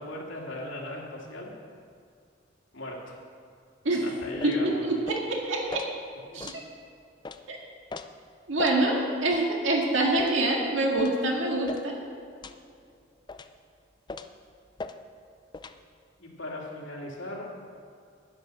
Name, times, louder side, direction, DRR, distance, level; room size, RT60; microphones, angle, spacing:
voice 1, 0.0-1.5 2.7-3.1 4.0-4.8 6.3-6.4 16.2-17.5, left 1 dB, 85° left, -3 dB, 2.7 m, -38 dB
sound 1, 4.4-4.6 5.1-5.3 5.7-5.9 6.4-6.6 7.2-7.4 7.9-8.1 8.6-8.8 9.3-9.5 10.2-10.4 11.0-11.2 11.7-11.9 12.4-12.6 13.3-13.5 14.1-14.4 14.8-15.0 15.5-15.8, left 3 dB, 25° left, 0.4 m, -39 dB
voice 2, 4.4-5.8 6.3-6.5 7.5-7.6 8.5-12.0, right 2 dB, 80° right, -1 dB, 2.0 m, -26 dB
10.0 x 10.0 x 6.3 m, 2.4 s
head